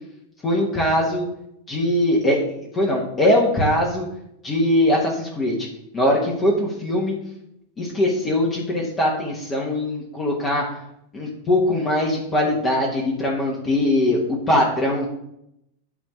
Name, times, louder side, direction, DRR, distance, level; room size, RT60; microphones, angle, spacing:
voice 1, 0.4-1.3 1.7-2.4 2.7-4.1 4.4-5.7 5.9-7.2 7.8-10.8 11.1-15.1, left 1 dB, 20° left, -2 dB, 1.8 m, -21 dB
9.2 x 3.4 x 6.5 m, 0.78 s
figure-of-eight pair, 90°, 0 cm